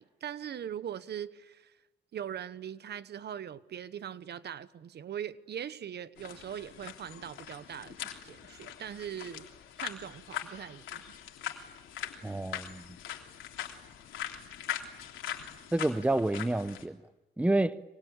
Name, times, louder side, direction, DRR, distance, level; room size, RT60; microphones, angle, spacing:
voice 1, 0.0-1.8 2.1-8.0 8.2-9.5 9.8-11.0, right 9 dB, 55° right, 1.1 m, -41 dB
sound 1, 6.2-16.9, left 10 dB, 80° left, 3.3 m, -42 dB
voice 2, 12.2-12.8 15.7-17.0 17.4-17.8, right 2 dB, 5° right, 0.9 m, -28 dB
25.0 x 24.5 x 8.9 m
cardioid pair, 90°, 20 cm